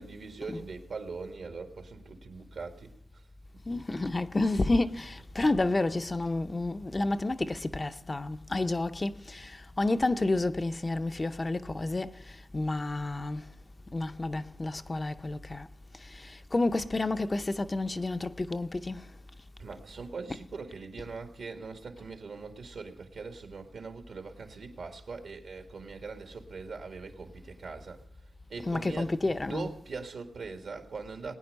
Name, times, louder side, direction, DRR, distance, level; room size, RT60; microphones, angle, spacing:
voice 1, 0.0-2.9 18.0-18.1 19.6-28.0 28.5-31.3, right 4 dB, 75° right, 1.8 m, -41 dB
voice 2, 3.7-12.2 12.5-13.4 13.9-15.7 16.2-19.0 28.6-29.7, left 2 dB, 30° left, 0.6 m, -30 dB
19.5 x 9.3 x 5.3 m
cardioid pair, 65°, 0 cm